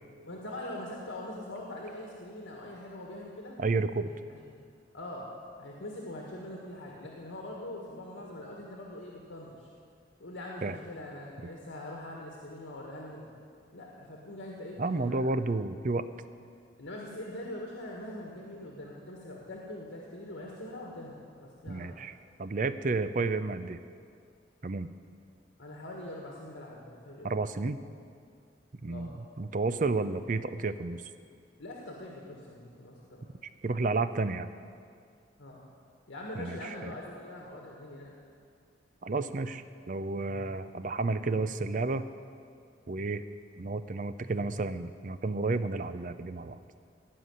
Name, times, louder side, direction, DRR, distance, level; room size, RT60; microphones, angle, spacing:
voice 1, 0.2-3.6 4.0-4.4 4.9-5.3 5.6-9.7 10.2-13.3 13.7-15.3 16.8-21.9 25.6-27.3 28.8-29.1 31.6-33.2 35.4-35.7 36.1-38.1, left 1 dB, 85° left, -2 dB, 1.7 m, -43 dB
voice 2, 3.6-4.1 10.6-10.8 14.8-16.1 21.7-23.8 24.6-24.9 27.2-27.8 28.8-31.0 33.6-34.5 36.4-36.9 39.0-42.0 42.9-43.2 43.6-46.6, right 3 dB, 40° right, 12 dB, 0.5 m, -31 dB
16.5 x 5.9 x 9.6 m, 2.2 s
head